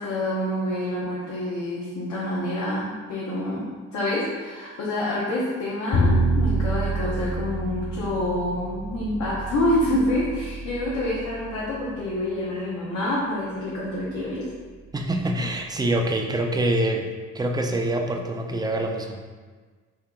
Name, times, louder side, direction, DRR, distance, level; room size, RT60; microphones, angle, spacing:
voice 1, 0.0-14.5, left 1 dB, 65° left, -7 dB, 0.8 m, -27 dB
Bowed string instrument, 5.9-12.1, right 1 dB, 20° left, 0.7 m, -27 dB
voice 2, 14.9-17.0 17.3-19.2, right 1 dB, 15° right, 2 dB, 0.3 m, -25 dB
2.9 x 2.8 x 3.6 m, 1.5 s
cardioid pair, 90°, 30 cm